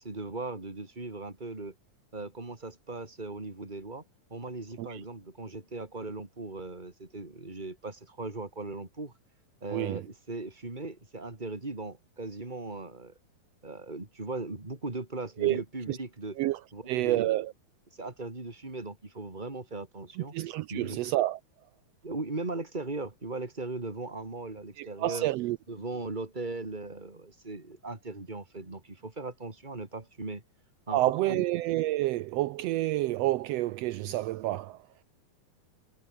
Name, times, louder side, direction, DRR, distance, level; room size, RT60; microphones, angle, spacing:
voice 1, 0.0-1.7 2.1-4.0 4.3-9.1 9.6-13.1 13.6-16.4 16.7-17.4 17.9-20.3 20.7-21.0 22.0-25.3 25.7-30.4 30.9-31.0 31.3-31.4, right 2 dB, 15° right, 3.8 m, -38 dB
voice 2, 9.7-10.0 15.4-15.6 15.9-16.0 16.4-16.6 16.9-17.5 20.3-21.4 24.8-25.6 30.9-34.8, right 16 dB, 85° right, 1.4 m, -29 dB
omnidirectional pair, 3.6 m